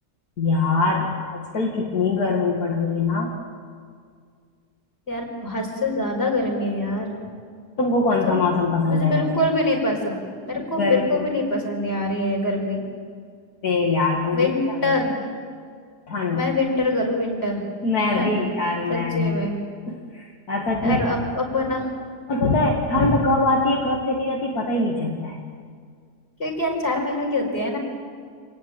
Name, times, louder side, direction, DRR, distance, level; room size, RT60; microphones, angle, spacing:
voice 1, 0.4-3.3 7.8-9.4 10.6-11.3 13.6-15.0 16.1-16.5 17.8-19.4 19.9-21.0 22.3-25.4, left 3 dB, 65° left, -2 dB, 2.8 m, -23 dB
voice 2, 5.1-7.2 8.2-8.3 8.9-12.9 14.3-15.1 16.3-17.6 18.1-18.5 18.9-19.6 20.8-21.9 26.4-27.8, left 1 dB, 40° left, 0 dB, 5.5 m, -24 dB
27.0 x 19.0 x 8.9 m, 2.1 s
omnidirectional pair, 1.7 m